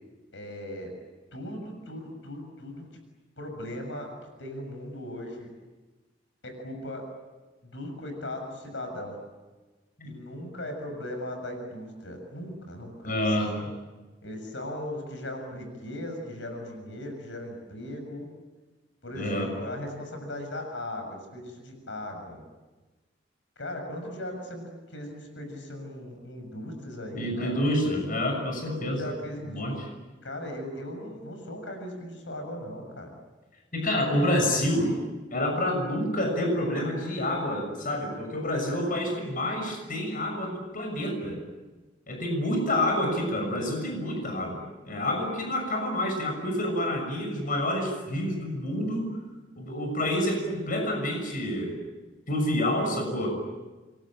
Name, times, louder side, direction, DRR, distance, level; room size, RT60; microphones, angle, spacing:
voice 1, 0.3-0.9 1.3-2.9 3.4-4.1 4.4-5.5 6.4-7.1 7.7-9.2 10.0-13.7 14.2-18.3 19.0-22.4 23.6-27.6 28.7-29.6 30.2-33.1, left 1 dB, 75° left, 4 dB, 6.9 m, -38 dB
voice 2, 13.0-13.7 19.1-19.5 27.1-29.0 29.5-29.9 33.7-34.9 35.3-41.4 42.1-49.1 49.6-51.8 52.3-53.4, left 1 dB, 50° left, 3 dB, 6.5 m, -28 dB
28.0 x 23.0 x 9.0 m, 1.2 s
head